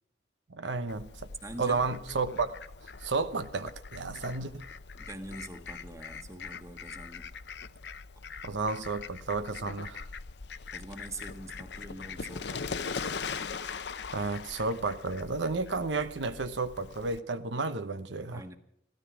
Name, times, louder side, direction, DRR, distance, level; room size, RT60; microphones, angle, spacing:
voice 1, 0.5-1.1 1.6-2.6 3.0-4.5 8.4-10.0 14.1-18.4, right 3 dB, 90° right, 0.9 m, -32 dB
Fowl, 0.9-17.2, left 5 dB, 65° left, 0.7 m, -41 dB
voice 2, 1.4-1.8 4.9-7.4 10.7-12.9 18.3-18.6, right 1 dB, 20° right, 1.4 m, -44 dB
15.5 x 13.5 x 6.1 m
head